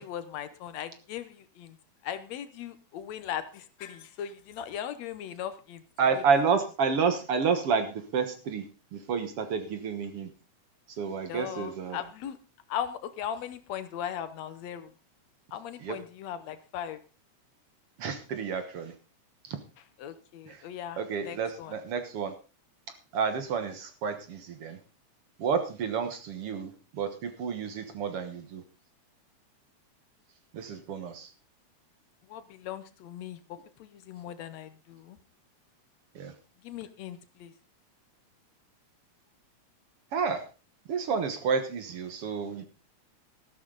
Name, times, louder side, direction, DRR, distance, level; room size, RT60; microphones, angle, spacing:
voice 1, 0.0-1.8 2.0-5.8 6.1-6.2 11.3-12.4 12.7-14.9 15.5-17.0 20.0-21.7 32.3-35.2 36.6-37.5, left 10 dB, 70° left, 12 dB, 2.0 m, -38 dB
voice 2, 6.0-8.7 8.9-10.3 11.0-12.0 15.8-16.0 18.0-18.9 19.4-19.6 20.5-20.6 21.0-22.3 23.1-24.8 25.4-28.6 30.5-31.3 36.2-36.3 40.1-40.4 40.9-42.7, right 5 dB, 55° right, 8 dB, 2.1 m, -30 dB
13.5 x 12.0 x 3.9 m, 0.34 s
omnidirectional pair, 3.3 m